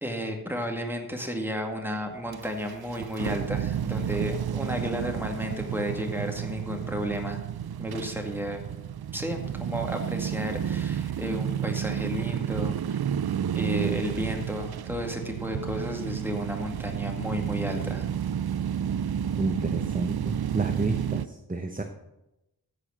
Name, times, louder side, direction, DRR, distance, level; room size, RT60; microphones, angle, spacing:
voice 1, 0.0-7.4 7.8-8.6 9.1-13.0 13.5-18.1, equal, 5° right, 2 dB, 2.1 m, -33 dB
sound 1, 2.3-21.3, right 9 dB, 80° right, 0.5 m, -31 dB
voice 2, 19.4-21.8, right 2 dB, 20° right, 5 dB, 0.8 m, -31 dB
14.5 x 5.0 x 6.4 m, 0.91 s
wide cardioid pair, 45°, 37 cm